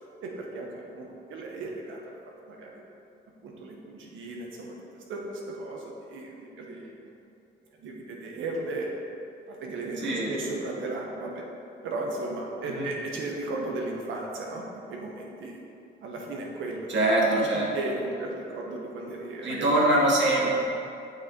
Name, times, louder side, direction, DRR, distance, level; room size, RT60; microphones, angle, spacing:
voice 1, 0.2-2.0 2.5-2.8 3.4-6.9 7.8-8.9 9.5-11.4 11.8-15.6 16.0-16.9 17.5-19.7, right 2 dB, 85° right, -1 dB, 1.3 m, -35 dB
voice 2, 10.0-10.3 12.6-12.9 16.9-17.7 19.4-20.6, right 1 dB, 65° right, -3 dB, 2.0 m, -23 dB
7.7 x 6.1 x 4.4 m, 2.7 s
cardioid pair, 90°, 20 cm